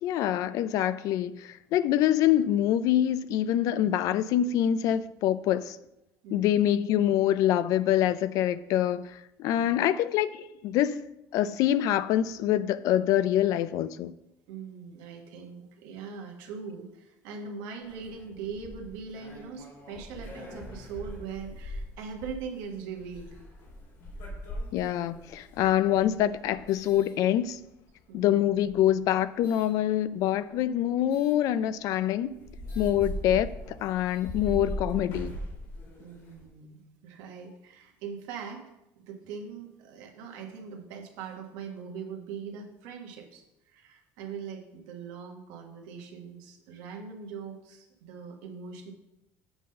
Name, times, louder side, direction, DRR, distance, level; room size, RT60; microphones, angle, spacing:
voice 1, 0.0-5.8 6.3-11.0 11.3-14.1 24.7-27.6 28.1-32.4 32.8-35.3, left 11 dB, 60° left, 0.4 m, -25 dB
voice 2, 6.2-6.6 9.6-9.8 14.5-23.3 28.1-28.4 36.0-38.6 39.0-48.9, right 6 dB, 90° right, 1.4 m, -41 dB
sound 1, 17.8-27.8 28.5-29.7 31.1-31.4 31.9-32.0 32.3-36.5, equal, 80° left, 3.2 m, -41 dB
7.8 x 3.8 x 6.5 m
cardioid pair, 140°, 6 cm